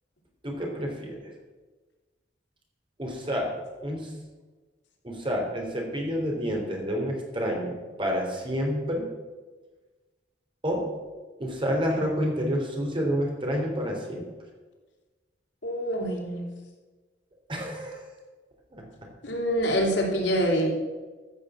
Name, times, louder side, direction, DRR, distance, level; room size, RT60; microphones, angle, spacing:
voice 1, 0.4-1.3 3.0-3.5 3.8-4.1 5.0-9.1 10.6-10.8 11.4-14.3 17.5-18.0 18.7-18.8, equal, 30° right, 0 dB, 3.0 m, -29 dB
voice 2, 15.6-16.4 19.2-20.7, equal, 85° left, -1 dB, 2.9 m, -25 dB
14.0 x 6.5 x 7.3 m, 1.3 s
head